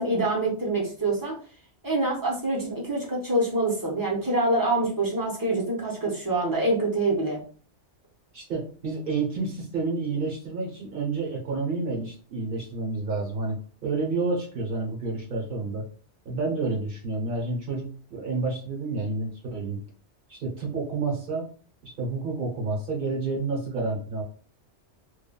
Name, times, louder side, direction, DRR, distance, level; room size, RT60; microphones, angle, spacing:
voice 1, 0.0-1.4 1.8-7.4, right 2 dB, 20° right, -3 dB, 0.7 m, -25 dB
voice 2, 8.3-15.8 16.2-19.8 20.3-21.5 21.8-24.2, right 3 dB, 50° right, -1 dB, 1.0 m, -29 dB
3.3 x 2.2 x 2.2 m, 0.42 s
omnidirectional pair, 1.2 m